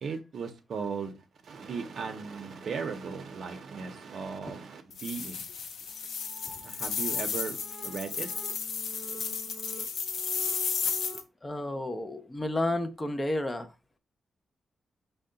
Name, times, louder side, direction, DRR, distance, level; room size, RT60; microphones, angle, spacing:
voice 1, 0.0-1.1 1.4-5.4 6.6-7.6 7.8-8.3, right 5 dB, 50° right, 0.6 m, -37 dB
sound 1, 4.9-11.2, left 6 dB, 75° left, 0.6 m, -33 dB
sound 2, 5.9-11.2, right 2 dB, 10° right, 0.8 m, -48 dB
voice 2, 11.4-13.7, left 1 dB, 15° left, 0.4 m, -31 dB
5.4 x 2.1 x 3.7 m
wide cardioid pair, 180°, 0 cm